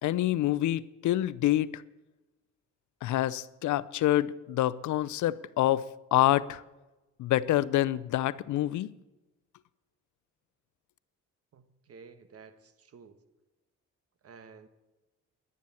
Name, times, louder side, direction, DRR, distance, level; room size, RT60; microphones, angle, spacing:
voice 1, 0.0-1.8 3.0-6.6 7.2-8.9, left 14 dB, 75° left, 0.6 m, -27 dB
voice 2, 11.5-13.2 14.2-14.7, right 5 dB, 50° right, 1.3 m, -52 dB
11.0 x 10.5 x 7.1 m
cardioid pair, 90°, 30 cm